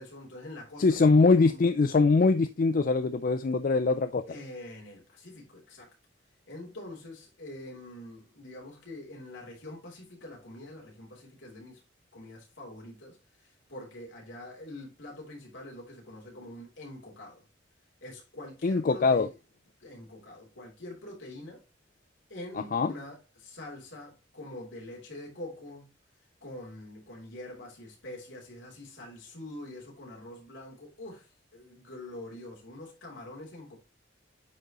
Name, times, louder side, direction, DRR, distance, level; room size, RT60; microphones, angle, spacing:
voice 1, 0.0-1.6 4.3-5.9 6.5-11.8 12.1-17.4 18.0-19.3 19.8-21.6 22.3-25.9 26.4-33.8, left 1 dB, 75° left, 3.3 m, -45 dB
voice 2, 0.8-4.2 18.6-19.3 22.7-22.9, left 4 dB, 45° left, 0.4 m, -23 dB
9.3 x 5.0 x 3.0 m
head